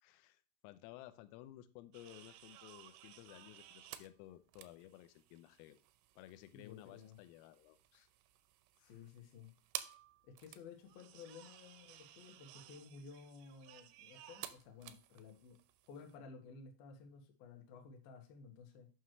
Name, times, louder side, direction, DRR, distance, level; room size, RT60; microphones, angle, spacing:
voice 1, 0.0-5.8 6.2-8.1 8.8-9.0, left 14 dB, 90° left, 11 dB, 3.3 m, -56 dB
sound 1, 1.9-16.2, right 14 dB, 90° right, 3.3 m, -54 dB
voice 2, 6.5-7.2 8.8-9.5 10.2-15.6 15.9-18.9, left 5 dB, 65° left, 3 dB, 2.5 m, -55 dB
9.4 x 5.9 x 3.1 m, 0.35 s
omnidirectional pair, 5.9 m